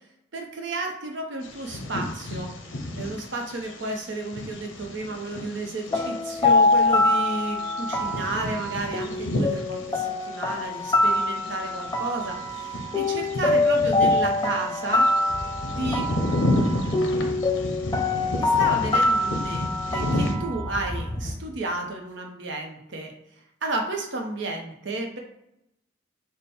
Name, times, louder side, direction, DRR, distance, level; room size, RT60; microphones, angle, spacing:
voice 1, 0.3-2.5 3.0-15.1 15.7-16.1 18.4-23.1 23.6-25.2, right 2 dB, 65° right, 2 dB, 0.7 m, -32 dB
Bird vocalization bird call bird song, 1.4-20.3, left 1 dB, 70° left, 0.6 m, -32 dB
sound 1, 5.9-21.0, left 2 dB, 20° left, 0.3 m, -24 dB
sound 2, 15.3-21.7, left 1 dB, 45° left, 1.3 m, -39 dB
4.1 x 2.1 x 3.4 m, 0.83 s
head